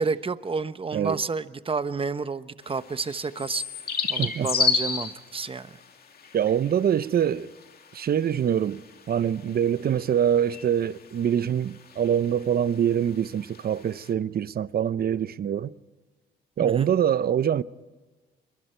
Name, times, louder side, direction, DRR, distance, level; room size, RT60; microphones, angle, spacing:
voice 1, 0.0-5.8 16.6-16.9, right 4 dB, 25° right, 1.0 m, -30 dB
sound 1, 2.6-14.1, left 5 dB, 50° left, 2.3 m, -32 dB
voice 2, 6.3-7.5 7.9-8.8 9.1-15.7 16.6-17.6, right 9 dB, 50° right, 0.8 m, -24 dB
27.0 x 23.5 x 4.5 m
cardioid pair, 90°, 20 cm